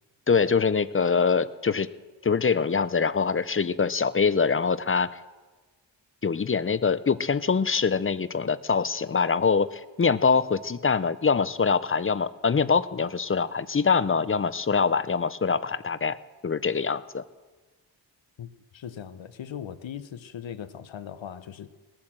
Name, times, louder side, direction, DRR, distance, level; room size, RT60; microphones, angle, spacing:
voice 1, 0.3-1.9 2.2-5.2 6.2-16.2 16.4-17.2, left 5 dB, 30° left, 0.5 m, -24 dB
voice 2, 18.7-21.7, left 9 dB, 75° left, 0.9 m, -39 dB
19.0 x 8.8 x 7.5 m
cardioid pair, 75°, 46 cm